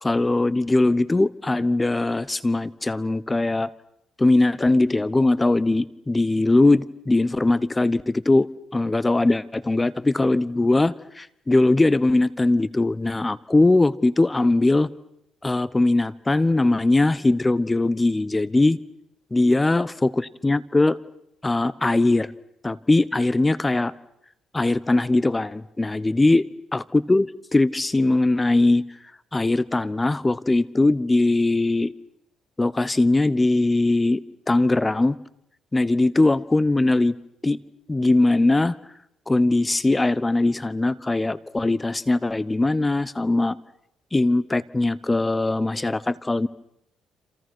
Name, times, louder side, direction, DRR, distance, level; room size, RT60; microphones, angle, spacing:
voice 1, 0.0-3.7 4.2-8.5 8.7-14.9 15.4-18.8 19.3-21.0 21.4-22.3 22.6-23.9 24.5-26.5 26.7-28.8 29.3-31.9 32.6-34.2 34.5-35.2 35.7-37.1 37.4-37.6 37.9-38.7 39.3-43.6 44.1-46.5, left 2 dB, 15° left, 19 dB, 1.0 m, -20 dB
29.0 x 27.0 x 6.2 m, 0.77 s
cardioid pair, 110°, 0 cm